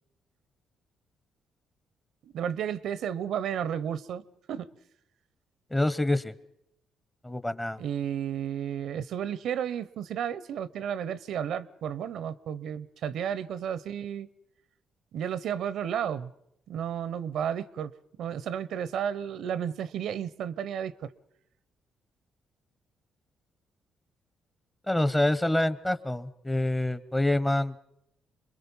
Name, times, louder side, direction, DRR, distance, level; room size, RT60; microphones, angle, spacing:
voice 1, 2.2-4.2 4.5-4.7 7.8-14.3 15.1-16.3 16.7-17.9 18.2-21.1, right 9 dB, 75° right, 0.7 m, -32 dB
voice 2, 5.7-6.3 7.2-7.8 24.9-27.8, left 1 dB, 15° left, 0.9 m, -26 dB
26.5 x 22.0 x 5.5 m
cardioid pair, 90°, 0 cm